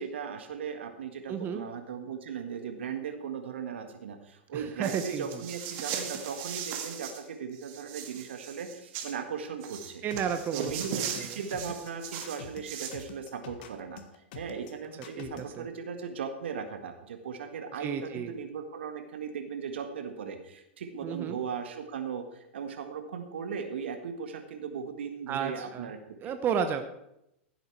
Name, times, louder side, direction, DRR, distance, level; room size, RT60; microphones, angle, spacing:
voice 1, 0.0-10.0 10.5-14.0 14.3-26.0 26.2-26.3, right 6 dB, 75° right, 7 dB, 1.6 m, -37 dB
voice 2, 1.3-1.6 4.5-5.4 10.0-11.4 15.2-15.7 17.8-18.3 21.0-21.4 25.3-25.9 26.2-26.8, right 7 dB, 35° right, 8 dB, 0.9 m, -33 dB
sound 1, 4.8-7.2 7.5-9.1 9.6-13.0, right 8 dB, 50° right, 1.9 m, -38 dB
sound 2, 10.1-15.6, left 7 dB, 60° left, 1.5 m, -46 dB
15.0 x 8.0 x 4.6 m, 0.83 s
hypercardioid pair, 100°, 6 cm